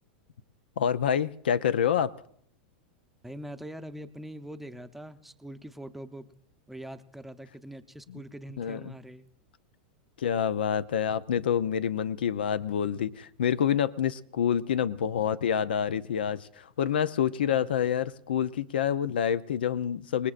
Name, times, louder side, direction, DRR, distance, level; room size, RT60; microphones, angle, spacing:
voice 1, 0.8-2.1 8.1-8.2 8.6-8.9 10.2-20.3, left 8 dB, 90° left, 15 dB, 0.5 m, -27 dB
voice 2, 3.2-6.3 6.7-9.3, right 1 dB, 5° right, 8 dB, 0.6 m, -43 dB
26.0 x 19.5 x 2.5 m, 0.66 s
hypercardioid pair, 125°, 5 cm